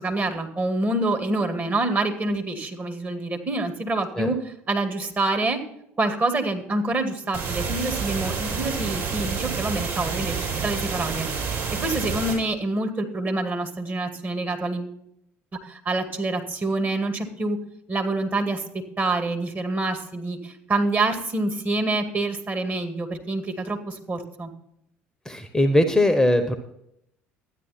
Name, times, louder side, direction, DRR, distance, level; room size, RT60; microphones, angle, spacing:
voice 1, 0.0-4.4 4.7-5.6 6.0-10.4 10.6-11.3 11.8-14.9 15.7-17.6 17.9-18.6 19.0-24.5, right 2 dB, 30° right, 4 dB, 2.1 m, -26 dB
sound 1, 7.3-12.3, right 5 dB, 50° right, 5.1 m, -28 dB
voice 2, 25.2-26.6, left 1 dB, 5° left, 9 dB, 1.1 m, -20 dB
12.5 x 9.9 x 4.3 m, 0.75 s
figure-of-eight pair, 55°, 7 cm